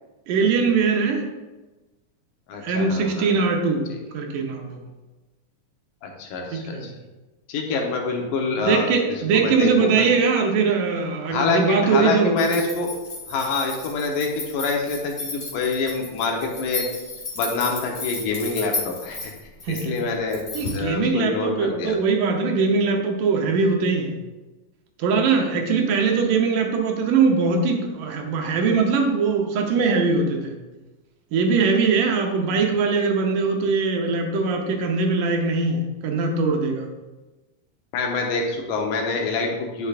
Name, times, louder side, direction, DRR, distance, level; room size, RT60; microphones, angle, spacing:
voice 1, 0.3-1.3 2.6-3.9 4.1-4.8 6.5-6.9 8.6-12.4 19.7-19.9 20.5-24.2 25.0-30.6 31.3-36.9, right 4 dB, 80° right, 2 dB, 2.5 m, -21 dB
voice 2, 2.5-3.5 6.0-6.9 7.5-10.1 11.3-12.9 13.3-16.9 17.4-19.3 19.7-20.4 20.7-22.0 32.5-32.6 37.9-39.9, left 3 dB, 80° left, 1 dB, 2.7 m, -26 dB
sound 1, 12.4-20.8, left 3 dB, 55° left, 0.7 m, -34 dB
10.0 x 6.8 x 2.5 m, 1.1 s
omnidirectional pair, 3.8 m